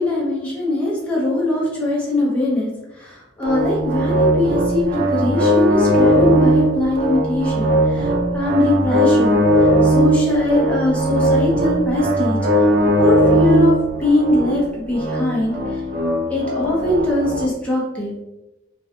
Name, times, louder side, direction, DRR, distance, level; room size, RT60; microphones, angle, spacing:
voice 1, 0.0-12.7 13.0-13.7 14.0-15.8 16.3-18.1, left 2 dB, 5° left, -6 dB, 0.6 m, -21 dB
sound 1, 3.4-17.5, right 1 dB, 50° right, 0.4 m, -18 dB
2.4 x 2.2 x 2.7 m, 1.0 s
head